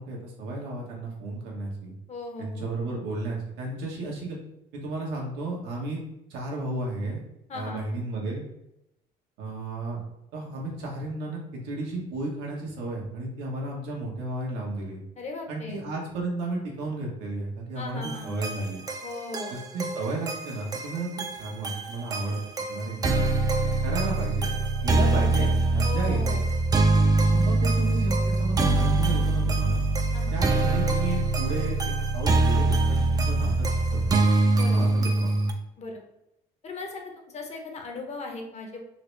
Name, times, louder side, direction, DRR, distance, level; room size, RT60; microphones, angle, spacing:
voice 1, 0.0-1.9 2.4-4.4 4.7-6.0 6.3-7.2 7.5-8.4 9.4-10.0 10.3-15.0 15.5-18.8 19.5-21.1 21.4-22.4 22.7-23.3 23.8-24.6 24.8-26.4 27.3-29.8 30.3-34.1 34.6-35.3, right 2 dB, 90° right, -2 dB, 1.1 m, -33 dB
voice 2, 2.1-2.9 7.5-7.8 15.2-15.8 17.8-18.3 19.0-19.5 25.0-25.5 25.8-26.4 30.1-30.3 34.5-34.8 35.8-36.0 36.6-38.8, left 3 dB, 40° left, 2 dB, 0.8 m, -38 dB
sound 1, 18.0-35.5, right 2 dB, 20° right, 0.4 m, -24 dB
4.0 x 2.0 x 3.2 m, 0.86 s
cardioid pair, 110°, 17 cm